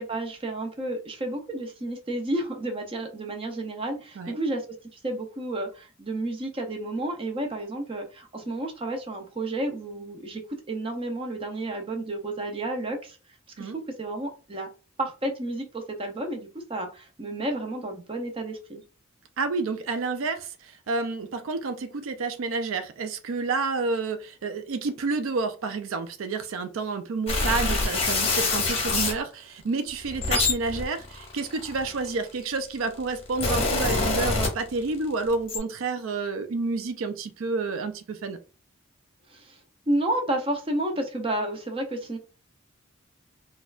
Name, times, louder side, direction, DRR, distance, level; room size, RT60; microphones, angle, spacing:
voice 1, 0.0-4.7 4.9-10.4 10.7-13.2 13.6-14.7 15.0-18.8 27.6-27.8 39.3-39.6 39.9-42.2, right 1 dB, 25° right, 0.5 m, -31 dB
voice 2, 19.4-38.4, right 4 dB, 80° right, 0.4 m, -29 dB
sound 1, 27.3-29.2 29.9-32.3 33.0-35.0 35.3-35.6, left 3 dB, 30° left, 1.0 m, -25 dB
4.2 x 2.3 x 2.4 m
head